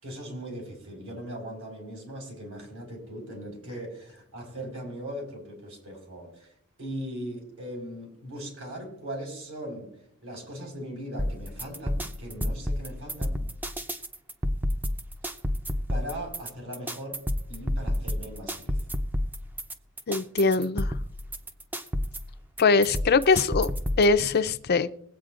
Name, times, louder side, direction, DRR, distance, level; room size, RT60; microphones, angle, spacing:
voice 1, 0.0-6.5 6.8-13.4 15.9-17.2 17.5-18.7, equal, 70° right, 1 dB, 4.6 m, -39 dB
sound 1, 11.2-24.2, equal, 10° right, 0.6 m, -30 dB
voice 2, 20.1-20.9 22.6-23.7 24.0-24.9, left 4 dB, 50° left, 11 dB, 0.5 m, -22 dB
21.5 x 8.5 x 2.5 m, 0.74 s
head